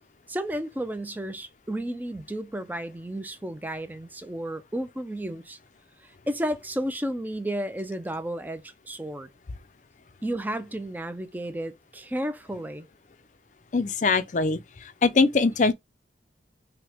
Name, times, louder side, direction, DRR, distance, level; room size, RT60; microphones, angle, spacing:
voice 1, 0.3-5.6 6.0-9.3 10.2-12.9, right 1 dB, 10° right, 0.4 m, -32 dB
voice 2, 13.7-14.6 15.0-15.7, left 4 dB, 40° left, 0.5 m, -22 dB
5.9 x 2.2 x 3.4 m
head